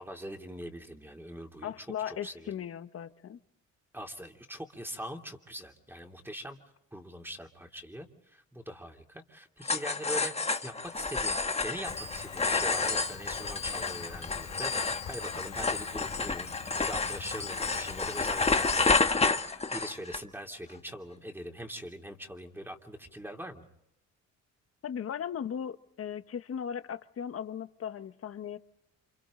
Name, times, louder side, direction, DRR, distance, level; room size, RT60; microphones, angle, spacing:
voice 1, 0.0-2.5 3.9-6.6 6.9-23.6, equal, 5° right, 3 dB, 3.1 m, -42 dB
voice 2, 1.6-3.4 24.8-28.6, left 8 dB, 50° left, 11 dB, 1.2 m, -37 dB
sound 1, 9.6-20.2, left 4 dB, 20° left, 1.2 m, -30 dB
Rain, 11.9-19.0, left 9 dB, 75° left, 3.0 m, -47 dB
29.5 x 26.5 x 3.9 m, 0.83 s
cardioid pair, 90°, 30 cm